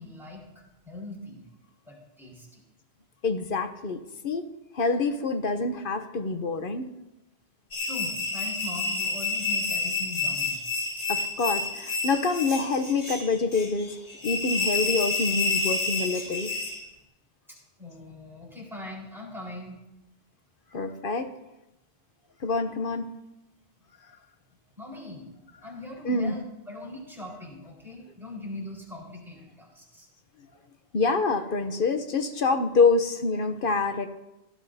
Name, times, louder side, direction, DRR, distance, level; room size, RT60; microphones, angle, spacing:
voice 1, 0.0-1.5 1.8-2.6 7.8-10.6 17.5-19.8 24.8-25.3 25.6-30.1, left 2 dB, ahead, -4 dB, 4.2 m, -41 dB
voice 2, 3.2-4.5 4.7-6.9 11.1-14.0 14.2-16.5 20.7-21.3 22.4-23.1 26.0-26.3 30.9-34.1, left 3 dB, 55° left, 8 dB, 0.9 m, -26 dB
sound 1, 7.7-16.8, left 4 dB, 85° left, 2.3 m, -29 dB
18.0 x 12.0 x 2.7 m, 0.95 s
omnidirectional pair, 1.1 m